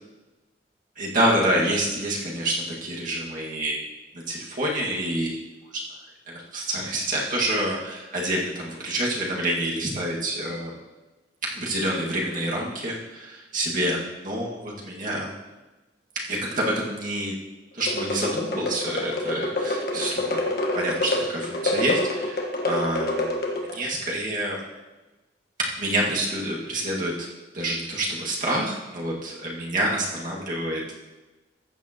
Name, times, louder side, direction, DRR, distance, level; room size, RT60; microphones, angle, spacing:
voice 1, 1.0-3.8 4.3-5.4 6.3-10.7 11.5-15.3 16.3-17.3 17.7-20.4 20.7-23.4 23.7-24.6 25.8-27.3 27.5-30.8, right 1 dB, 50° right, -4 dB, 2.0 m, -27 dB
sound 1, 17.8-23.9, left 1 dB, 60° left, 1.5 m, -27 dB
14.5 x 8.8 x 3.0 m, 1.1 s
head